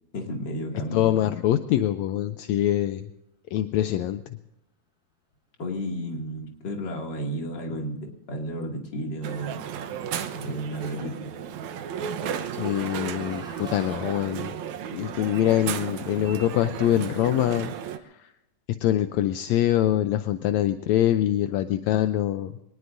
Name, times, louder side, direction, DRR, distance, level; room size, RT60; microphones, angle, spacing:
voice 1, 0.1-1.0 5.6-9.5 10.1-11.4, equal, 40° left, 1 dB, 2.9 m, -33 dB
voice 2, 0.9-3.1 3.5-4.4 12.5-14.5 14.9-17.7 18.0-18.3 18.7-22.6, left 12 dB, 80° left, 9 dB, 1.9 m, -24 dB
sound 1, 8.9-9.4 10.8-14.8, equal, ahead, 4.8 m, -50 dB
Crowd, 9.2-18.0, right 8 dB, 80° right, 2.3 m, -34 dB
23.0 x 19.5 x 2.6 m, 0.87 s
omnidirectional pair, 3.3 m